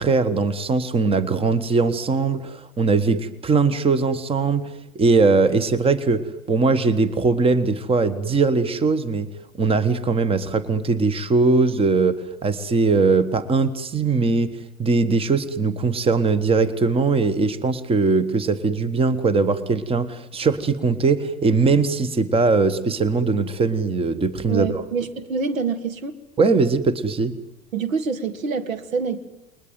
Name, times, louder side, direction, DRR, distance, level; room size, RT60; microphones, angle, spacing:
voice 1, 0.0-4.6 4.9-9.3 9.6-12.2 12.4-24.7 26.4-27.3, right 4 dB, 15° right, 15 dB, 1.4 m, -20 dB
voice 2, 24.5-26.1 27.7-29.3, right 5 dB, 70° right, 10 dB, 2.1 m, -26 dB
29.5 x 21.5 x 9.2 m, 0.93 s
figure-of-eight pair, 85°, 42 cm